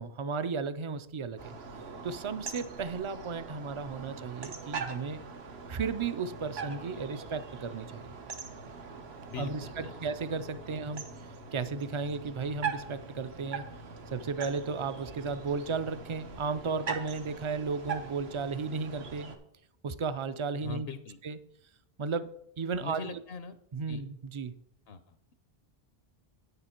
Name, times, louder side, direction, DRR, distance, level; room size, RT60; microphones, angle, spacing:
voice 1, 0.0-1.5 2.0-5.2 5.7-8.2 9.4-11.0 11.5-13.6 14.1-19.3 19.8-20.9 21.2-21.4 22.0-23.2 23.7-24.5, right 5 dB, 45° right, 13 dB, 0.4 m, -34 dB
sound 1, 1.4-19.4, right 5 dB, 90° right, 1.3 m, -42 dB
voice 2, 9.3-9.9 20.6-21.2 22.8-23.6 23.9-24.0 24.9-25.3, left 6 dB, 75° left, 10 dB, 0.9 m, -42 dB
9.2 x 6.8 x 4.4 m, 0.77 s
omnidirectional pair, 1.0 m